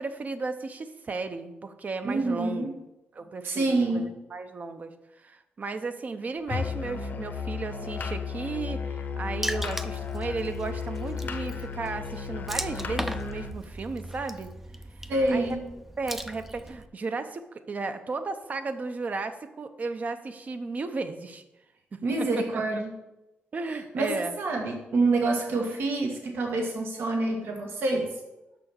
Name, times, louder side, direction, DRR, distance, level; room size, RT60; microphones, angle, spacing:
voice 1, 0.0-2.7 3.1-4.9 5.2-14.5 15.3-15.6 16.0-21.4 21.9-22.6 23.5-24.3, right 3 dB, 45° right, 9 dB, 0.8 m, -34 dB
voice 2, 2.0-2.7 3.4-4.1 15.1-15.6 22.0-22.9 23.9-28.1, right 2 dB, 75° right, 1 dB, 1.6 m, -27 dB
Musical instrument, 6.5-13.6, left 6 dB, 55° left, 0.8 m, -34 dB
Water / Splash splatter, 9.4-16.9, right 1 dB, 5° right, 0.5 m, -38 dB
6.2 x 6.0 x 6.9 m, 0.95 s
cardioid pair, 90°, 4 cm